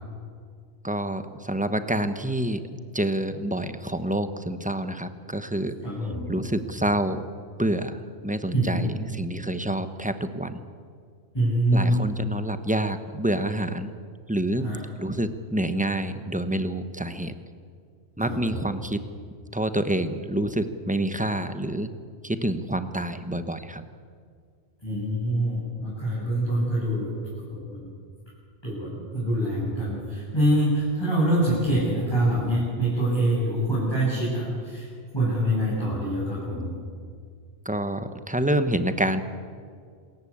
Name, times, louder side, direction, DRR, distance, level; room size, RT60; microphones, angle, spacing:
voice 1, 0.8-2.6 2.9-5.7 6.3-7.2 7.6-8.9 9.2-10.6 11.7-14.0 14.3-17.3 18.2-19.0 19.5-21.9 22.2-23.8 37.6-39.2, right 1 dB, 5° right, 10 dB, 1.0 m, -27 dB
voice 2, 5.8-6.3 8.5-8.8 11.3-12.0 14.6-14.8 18.2-18.7 24.8-27.1 27.5-27.9 28.6-34.9 35.1-36.7, right 1 dB, 20° left, -8 dB, 7.8 m, -25 dB
26.5 x 15.0 x 8.7 m, 2.1 s
omnidirectional pair, 1.2 m